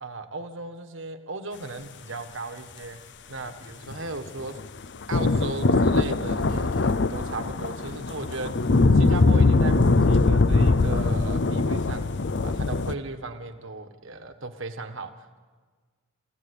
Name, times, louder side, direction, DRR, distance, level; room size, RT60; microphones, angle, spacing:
voice 1, 0.0-3.0 3.3-4.6 5.1-8.5 8.9-12.1 12.4-15.4, right 2 dB, 60° right, 7 dB, 1.6 m, -36 dB
sound 1, 3.9-12.9, left 3 dB, 55° left, 0.6 m, -22 dB
28.0 x 15.0 x 8.3 m, 1.5 s
head